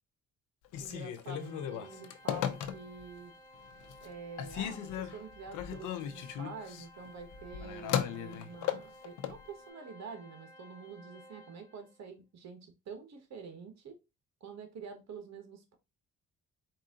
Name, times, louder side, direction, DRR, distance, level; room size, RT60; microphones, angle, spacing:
Telephone, 0.6-3.1 3.6-4.1 4.4-9.4, left 10 dB, 85° left, 0.7 m, -37 dB
voice 1, 0.8-3.3 4.0-14.0 14.4-15.7, right 5 dB, 60° right, 1.4 m, -47 dB
Organ, 1.2-12.0, left 1 dB, 10° left, 1.5 m, -55 dB
4.6 x 2.7 x 3.7 m
cardioid pair, 90°, 30 cm